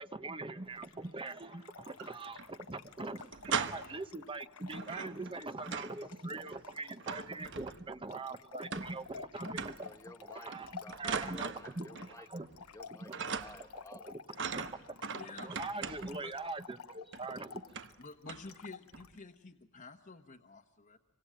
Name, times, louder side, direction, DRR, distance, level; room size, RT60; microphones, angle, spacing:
voice 1, 0.0-9.9 10.3-11.9 12.2-12.5 13.0-13.1 13.9-14.2 14.5-14.8 15.4-17.6, right 2 dB, 25° right, 11 dB, 1.1 m, -42 dB
Trickle dribble / Fill (with liquid), 0.7-19.2, left 5 dB, 90° left, 1.1 m, -52 dB
sound 1, 1.8-2.5 2.8-2.9 3.2-4.1 4.7-6.0 6.3-8.0 8.7-9.2 9.4-9.9 10.5-12.2 12.5-12.8 13.1-13.8 14.3-16.3 17.1-17.3 17.7-18.0 18.3-18.5 18.9-19.2, right 6 dB, 60° right, 1.2 m, -40 dB
voice 2, 9.8-12.5 12.7-14.1 14.4-15.3, left 1 dB, 15° left, 7 dB, 1.7 m, -55 dB
voice 3, 15.2-15.6 16.2-16.4 18.0-21.0, left 3 dB, 40° left, 1 dB, 1.2 m, -50 dB
26.5 x 25.0 x 9.0 m, 1.1 s
head